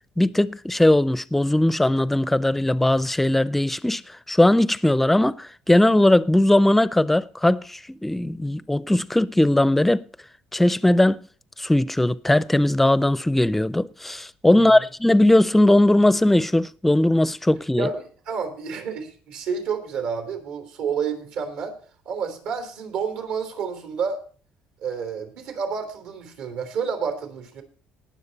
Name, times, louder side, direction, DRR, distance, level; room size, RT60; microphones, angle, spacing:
voice 1, 0.2-4.0 4.3-10.0 10.5-11.2 11.6-17.9, left 1 dB, 5° left, 0.4 m, -19 dB
voice 2, 14.5-14.9 17.8-21.8 22.0-24.2 24.8-27.6, right 6 dB, 80° right, 3.4 m, -30 dB
19.5 x 7.3 x 4.1 m
cardioid pair, 115°, 3 cm